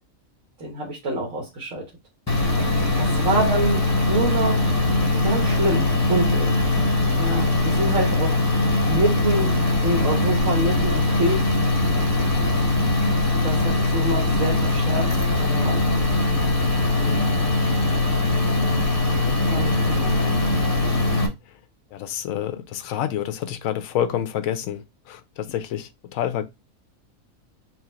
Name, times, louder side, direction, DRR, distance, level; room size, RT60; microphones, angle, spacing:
voice 1, 0.6-1.8 3.0-3.8 4.1-4.7 5.2-6.7 7.1-8.4 8.9-9.6 9.8-11.4 13.4-15.8 17.0-17.3 19.4-20.4, right 1 dB, 65° right, 1.5 m, -27 dB
sound 1, 2.3-21.3, left 2 dB, 15° left, 0.7 m, -21 dB
voice 2, 21.9-26.4, left 10 dB, 75° left, 1.0 m, -28 dB
4.6 x 2.0 x 4.4 m
omnidirectional pair, 1.5 m